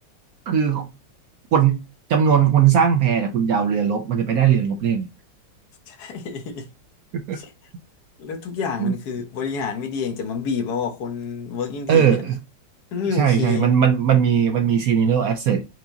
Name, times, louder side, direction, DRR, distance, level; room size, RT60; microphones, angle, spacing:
voice 1, 0.5-0.9 1.5-1.8 2.1-5.1 7.1-7.4 8.8-8.9 11.9-12.4 13.1-15.6, right 8 dB, 70° right, 0.9 m, -19 dB
voice 2, 5.9-6.7 7.3-7.5 8.2-12.2 12.9-13.7 14.4-14.5, left 5 dB, 60° left, 1.4 m, -28 dB
4.7 x 2.8 x 3.8 m
omnidirectional pair, 2.0 m